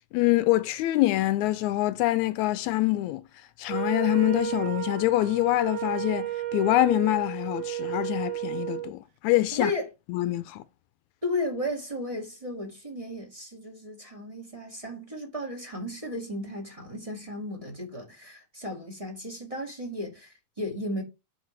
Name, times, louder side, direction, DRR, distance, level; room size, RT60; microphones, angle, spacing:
voice 1, 0.1-3.2 3.6-9.7 10.1-10.6, left 17 dB, 80° left, 1.8 m, -25 dB
Wind instrument woodwind instrument, 3.7-8.9, right 13 dB, 75° right, 1.2 m, -33 dB
voice 2, 9.5-9.9 11.2-21.0, left 1 dB, 15° right, 1.7 m, -34 dB
8.8 x 5.2 x 3.3 m
omnidirectional pair, 3.7 m